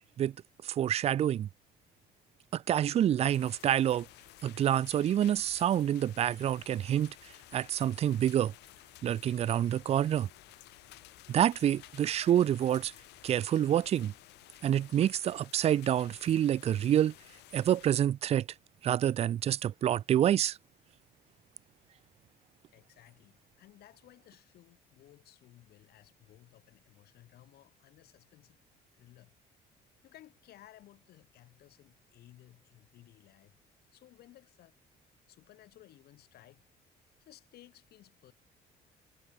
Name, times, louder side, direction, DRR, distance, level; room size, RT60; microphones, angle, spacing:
voice 1, 0.6-1.5 2.5-4.1 4.4-7.1 7.5-8.5 9.0-10.3 11.3-12.9 13.2-14.1 14.6-17.1 17.5-18.5 18.8-20.6, right 11 dB, 40° right, 0.3 m, -27 dB
sound 1, 3.3-17.9, left 19 dB, 85° left, 6.1 m, -54 dB
voice 2, 22.7-28.6 28.9-29.3 30.0-33.6 33.9-34.8 35.3-36.6 37.2-38.3, left 14 dB, 70° left, 2.8 m, -58 dB
cardioid pair, 110°, 17 cm